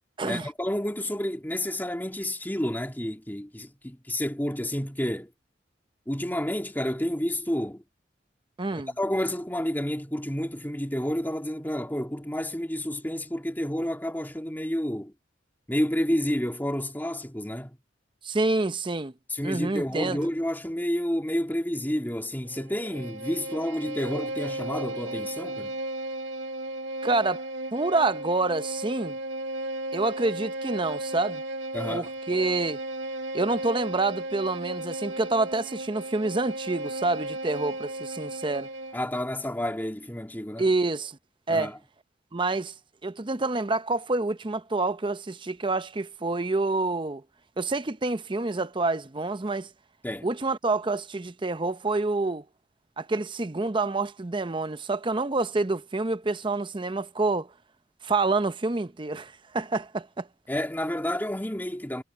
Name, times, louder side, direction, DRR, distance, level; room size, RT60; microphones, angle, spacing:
voice 1, 0.2-5.3 6.1-7.8 8.7-15.1 15.7-17.8 19.3-25.8 31.7-32.1 38.9-40.7 41.5-41.8 50.0-50.3 60.5-62.0, left 1 dB, 10° left, 2.2 m, -30 dB
voice 2, 8.6-8.9 18.2-19.1 19.4-20.2 27.0-27.5 27.7-29.2 29.9-31.4 31.9-32.8 33.3-38.7 40.6-41.2 41.5-41.7 42.3-42.7 43.0-47.2 47.6-49.7 50.2-52.4 53.0-57.5 58.0-60.3, right 3 dB, 25° right, 0.7 m, -27 dB
Bowed string instrument, 22.5-39.1, right 1 dB, 65° right, 2.1 m, -35 dB
head